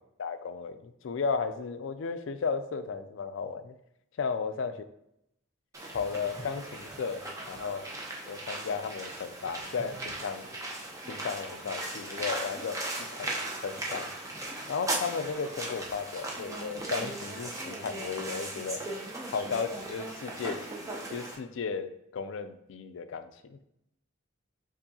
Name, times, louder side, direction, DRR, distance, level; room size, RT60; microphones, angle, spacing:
voice 1, 0.2-3.7 4.2-4.7 5.9-7.8 8.3-10.5 11.1-12.8 13.1-14.1 14.7-18.8 19.3-23.6, left 5 dB, 75° left, 10 dB, 0.4 m, -34 dB
sound 1, 5.7-21.3, right 2 dB, 15° right, 0.6 m, -38 dB
6.9 x 2.7 x 2.7 m, 0.79 s
head